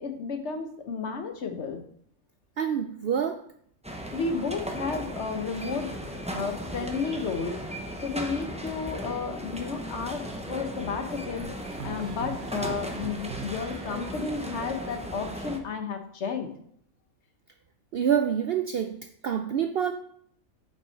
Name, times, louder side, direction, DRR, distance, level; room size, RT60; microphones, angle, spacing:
voice 1, 0.0-1.8 4.1-16.5, left 5 dB, 60° left, 6 dB, 1.1 m, -32 dB
voice 2, 2.6-3.4 17.9-19.0 19.2-19.9, right 8 dB, 65° right, 7 dB, 0.6 m, -26 dB
sound 1, 3.8-15.6, equal, 10° right, 0.4 m, -37 dB
sound 2, 11.4-14.1, right 8 dB, 90° right, 1.2 m, -42 dB
7.0 x 5.6 x 4.5 m, 0.65 s
omnidirectional pair, 1.5 m